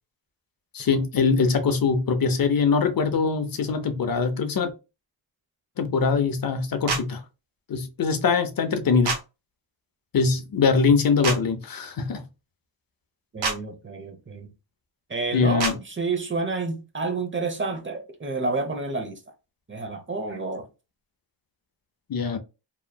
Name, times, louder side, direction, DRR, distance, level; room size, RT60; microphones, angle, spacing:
voice 1, 0.7-4.7 5.8-7.2 7.7-9.2 10.1-12.2 15.3-15.8 22.1-22.4, left 5 dB, 45° left, 0.7 m, -22 dB
sound 1, 6.9-7.0 9.0-9.2 11.2-11.4 13.4-13.6 15.6-15.7, right 4 dB, 70° right, 1.0 m, -25 dB
voice 2, 13.3-14.5 15.1-19.2 19.7-20.7, right 3 dB, 25° right, 0.8 m, -29 dB
2.9 x 2.4 x 2.2 m
supercardioid pair, 45°, 48 cm